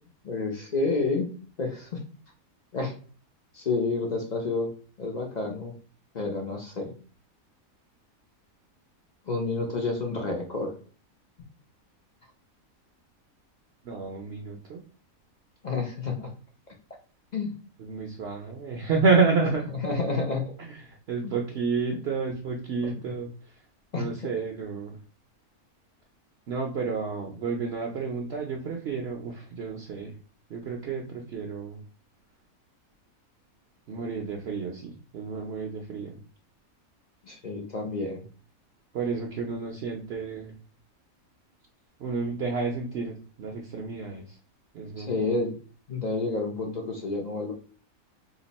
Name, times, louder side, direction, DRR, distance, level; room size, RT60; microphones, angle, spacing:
voice 1, 0.2-1.3 1.6-2.0 2.7-2.9 3.5-4.7 5.0-5.7 6.1-6.9 9.3-10.7 15.6-16.3 17.3-17.5 19.7-20.5 21.2-21.3 22.8-22.9 23.9-24.3 37.2-38.2 44.9-45.5 45.9-47.5, left 3 dB, 45° left, 1 dB, 0.5 m, -29 dB
voice 2, 13.8-14.8 17.8-19.7 21.1-23.3 23.9-25.0 26.5-30.1 30.5-31.8 33.9-36.1 38.9-40.5 42.0-44.2 44.7-45.3, right 4 dB, 60° right, 1 dB, 0.7 m, -30 dB
2.9 x 2.5 x 4.0 m, 0.40 s
omnidirectional pair, 1.5 m